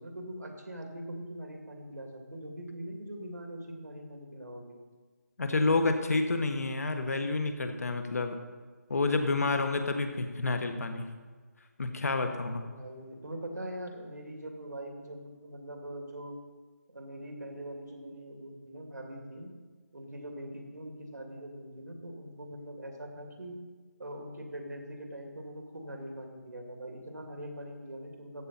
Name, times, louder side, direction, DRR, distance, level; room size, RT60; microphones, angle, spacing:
voice 1, 0.0-4.8 12.6-16.4 16.9-19.5 19.9-23.6 24.0-28.5, right 1 dB, 90° right, 2 dB, 2.6 m, -42 dB
voice 2, 5.4-8.4 8.9-11.1 11.8-12.6, left 3 dB, 60° left, 6 dB, 1.4 m, -29 dB
14.5 x 8.5 x 4.3 m, 1.4 s
figure-of-eight pair, 170°, 9 cm